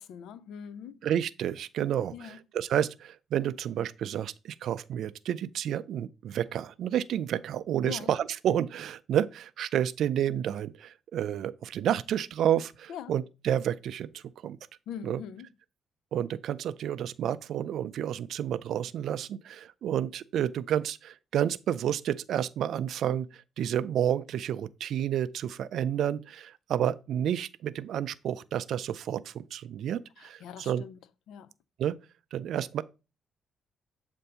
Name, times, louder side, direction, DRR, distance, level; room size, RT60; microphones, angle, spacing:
voice 1, 0.0-1.0 2.1-2.4 7.8-8.1 12.9-13.1 14.9-15.5 30.2-31.0 31.3-31.5, left 8 dB, 80° left, 0.4 m, -42 dB
voice 2, 1.0-14.6 15.0-15.2 16.1-30.8 31.8-32.0 32.3-32.8, right 10 dB, 70° right, 0.4 m, -30 dB
7.7 x 2.6 x 5.5 m
cardioid pair, 90°, 0 cm